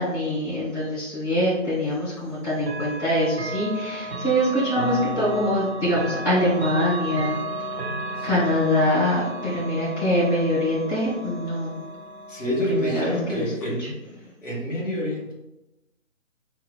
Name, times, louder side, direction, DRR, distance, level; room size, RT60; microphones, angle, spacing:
voice 1, 0.0-7.4 8.2-11.8 12.8-13.4, left 1 dB, 15° left, -14 dB, 0.7 m, -24 dB
Chime / Clock, 2.6-13.4, right 1 dB, 55° right, 0.5 m, -33 dB
voice 2, 8.1-8.5 12.3-13.9 14.4-15.3, left 1 dB, 65° left, -3 dB, 1.2 m, -27 dB
2.9 x 2.2 x 2.2 m, 0.98 s
figure-of-eight pair, 155°, 40 cm